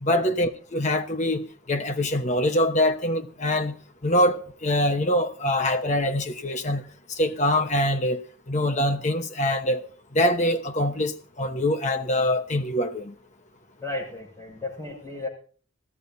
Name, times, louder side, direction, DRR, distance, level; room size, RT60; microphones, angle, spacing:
voice 1, 0.0-3.8 4.0-6.8 7.1-9.9 10.1-13.1, left 1 dB, 35° left, 1.0 m, -24 dB
voice 2, 13.8-15.3, left 2 dB, 15° left, 6.0 m, -34 dB
16.0 x 13.5 x 4.0 m
head